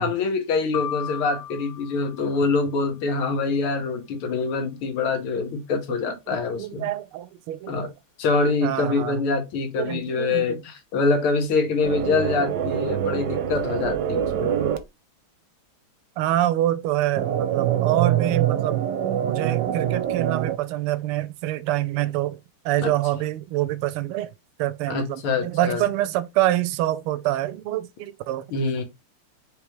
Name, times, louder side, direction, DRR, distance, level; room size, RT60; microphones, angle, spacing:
voice 1, 0.0-6.9 7.7-7.9 8.2-14.6 22.8-22.9 24.9-25.8 28.5-28.8, left 4 dB, 75° left, 2.0 m, -25 dB
sound 1, 0.7-2.9, left 9 dB, 50° left, 1.0 m, -35 dB
voice 2, 5.9-7.9 8.6-9.2 9.8-10.6 16.2-18.8 19.2-24.3 24.6-28.5, right 14 dB, 85° right, 1.5 m, -26 dB
sound 2, 11.8-14.8 17.2-20.6, right 10 dB, 65° right, 1.2 m, -24 dB
5.0 x 3.5 x 3.1 m
omnidirectional pair, 2.4 m